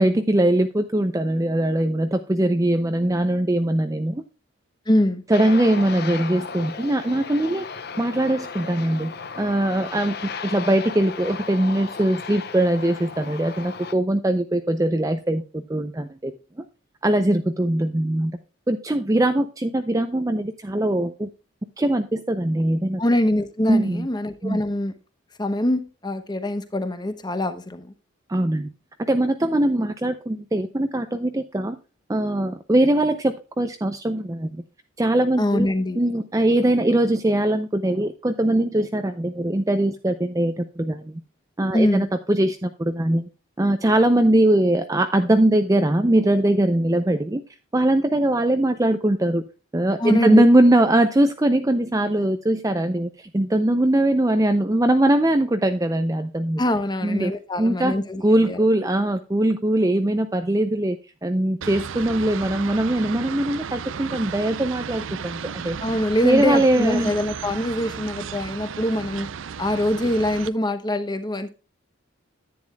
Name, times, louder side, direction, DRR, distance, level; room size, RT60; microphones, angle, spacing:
voice 1, 0.0-4.2 5.3-7.7 8.0-10.1 10.4-16.3 17.0-18.4 18.7-21.3 21.8-23.0 23.7-24.1 24.4-24.6 28.3-28.7 29.1-31.8 32.1-34.6 35.0-35.7 36.0-41.2 41.6-43.3 43.6-47.4 47.7-49.4 49.7-56.6 57.0-57.3 57.6-57.9 58.2-61.0 61.2-65.9 66.2-67.1, right 1 dB, 15° right, 0.5 m, -21 dB
voice 2, 4.9-5.2 23.0-24.9 25.4-27.9 35.4-36.0 41.7-42.1 50.0-50.4 56.6-58.6 65.8-69.3 69.6-71.5, left 1 dB, 20° left, 0.9 m, -23 dB
Aircraft, 5.3-13.9, left 5 dB, 50° left, 0.8 m, -35 dB
sound 1, 61.6-70.5, right 7 dB, 70° right, 0.5 m, -34 dB
10.5 x 9.4 x 2.3 m
head